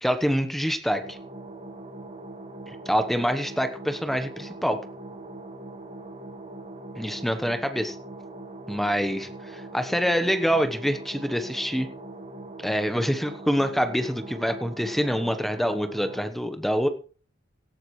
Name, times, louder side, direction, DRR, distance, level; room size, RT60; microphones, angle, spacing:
voice 1, 0.0-1.2 2.7-4.8 7.0-8.0 8.7-11.9 12.6-16.9, equal, ahead, 8 dB, 1.1 m, -26 dB
sound 1, 0.9-16.3, right 2 dB, 35° right, 1.9 m, -41 dB
17.5 x 14.0 x 3.2 m, 0.38 s
head